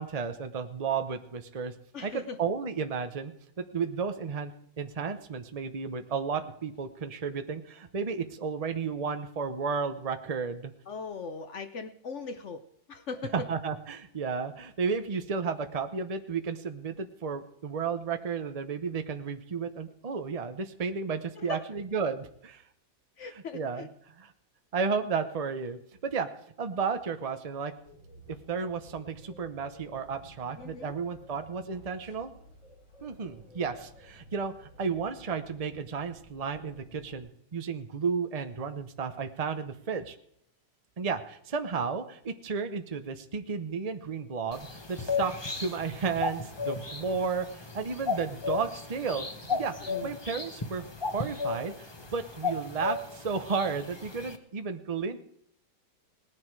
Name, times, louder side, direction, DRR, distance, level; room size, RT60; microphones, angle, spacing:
voice 1, 0.0-1.7 2.0-3.3 3.6-10.7 13.3-22.6 23.2-23.9 24.2-24.3 24.7-26.3 26.6-27.7 28.3-32.3 33.0-40.2 41.0-55.2, right 5 dB, 75° right, 7 dB, 0.3 m, -33 dB
voice 2, 1.9-2.4 10.9-12.6 12.9-13.3 21.4-21.6 23.2-23.9 30.6-30.9 49.8-50.1, left 5 dB, 55° left, 9 dB, 0.8 m, -39 dB
sound 1, 27.8-37.2, equal, 90° left, 4.7 m, -53 dB
sound 2, 44.5-54.4, left 4 dB, 25° left, 0.6 m, -35 dB
18.5 x 10.5 x 4.7 m, 0.70 s
omnidirectional pair, 2.1 m